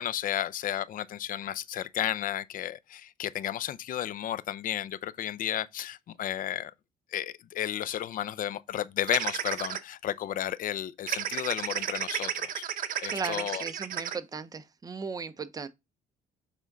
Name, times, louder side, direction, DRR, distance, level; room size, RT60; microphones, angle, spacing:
voice 1, 0.0-6.7 7.1-12.6 13.0-13.6, left 11 dB, 55° left, 0.6 m, -33 dB
sound 1, 9.1-9.8 11.1-14.2, right 10 dB, 55° right, 0.8 m, -32 dB
voice 2, 13.1-15.7, right 5 dB, 20° right, 0.7 m, -37 dB
7.4 x 3.5 x 3.9 m
cardioid pair, 110°, 17 cm